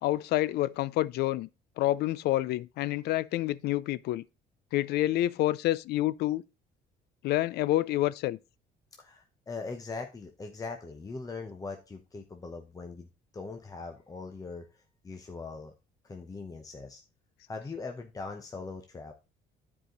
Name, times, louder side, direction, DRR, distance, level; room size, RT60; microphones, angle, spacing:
voice 1, 0.0-1.5 1.8-4.2 4.7-6.4 7.2-8.4, left 15 dB, 75° left, 0.4 m, -28 dB
voice 2, 9.0-13.1 13.3-15.7 16.0-17.0 17.5-19.1, left 4 dB, 20° left, 0.9 m, -41 dB
9.9 x 4.9 x 3.9 m
cardioid pair, 110°, 17 cm